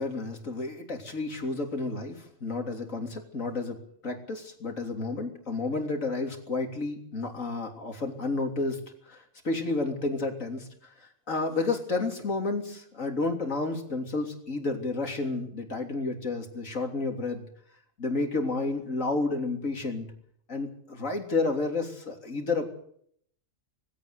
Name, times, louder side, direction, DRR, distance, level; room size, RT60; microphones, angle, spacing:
voice 1, 0.0-3.8 4.0-8.8 9.1-10.7 11.0-17.5 18.0-20.1 20.5-22.7, left 3 dB, 70° left, 4 dB, 3.7 m, -31 dB
20.0 x 16.5 x 8.2 m, 0.65 s
omnidirectional pair, 1.4 m